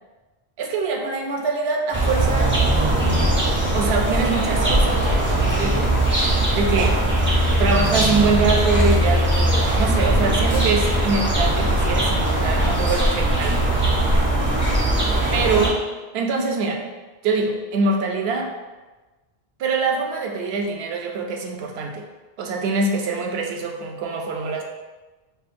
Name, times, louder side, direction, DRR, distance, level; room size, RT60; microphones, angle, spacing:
voice 1, 0.6-2.6 3.7-5.0 5.4-6.0 6.5-7.0 7.6-14.0 15.3-15.8 16.1-16.9 17.2-18.5 19.6-22.1 22.4-24.6, right 4 dB, 75° right, 2 dB, 0.8 m, -24 dB
sound 1, 1.9-15.7, right 1 dB, 15° right, 0.5 m, -20 dB
4.9 x 2.5 x 2.5 m, 1.2 s
omnidirectional pair, 1.1 m